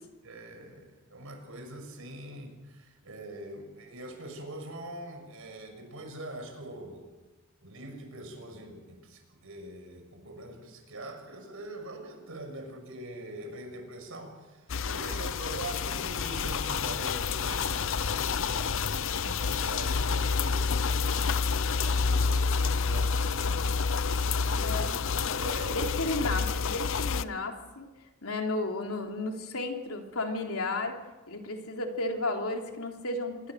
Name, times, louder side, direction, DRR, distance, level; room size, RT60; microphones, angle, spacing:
voice 1, 0.2-7.1 7.6-23.8 24.3-25.0 25.4-25.9, right 1 dB, 70° right, 4 dB, 6.2 m, -43 dB
sound 1, 14.7-27.2, left 5 dB, 65° left, 0.7 m, -29 dB
voice 2, 24.6-24.9 25.7-27.9 28.2-31.0 31.3-33.5, left 2 dB, 80° left, 2 dB, 3.4 m, -33 dB
27.0 x 20.0 x 6.5 m, 1.2 s
head